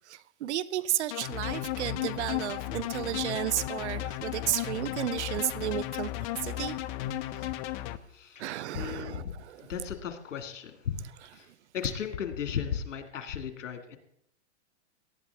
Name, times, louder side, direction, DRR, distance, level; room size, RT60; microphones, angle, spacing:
voice 1, 0.1-6.1 6.4-6.8 7.4-7.5 8.4-9.7 11.5-11.6, right 13 dB, 65° right, 18 dB, 0.9 m, -33 dB
sound 1, 1.1-8.0, left 13 dB, 35° left, 0.7 m, -34 dB
voice 2, 8.1-9.3 9.6-11.0 11.3-11.5 11.7-14.0, left 8 dB, 80° left, 8 dB, 2.2 m, -35 dB
18.0 x 12.5 x 3.5 m, 0.71 s
hypercardioid pair, 130°, 36 cm